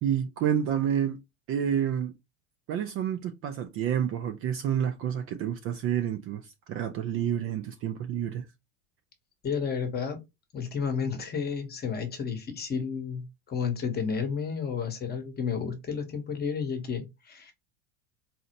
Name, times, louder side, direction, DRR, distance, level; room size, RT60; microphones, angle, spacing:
voice 1, 0.0-1.2 1.5-2.1 2.7-8.5, right 9 dB, 35° right, 0.4 m, -29 dB
voice 2, 9.4-10.2 10.5-17.5, left 6 dB, 25° left, 0.9 m, -31 dB
4.0 x 2.0 x 2.7 m
supercardioid pair, 110°, 39 cm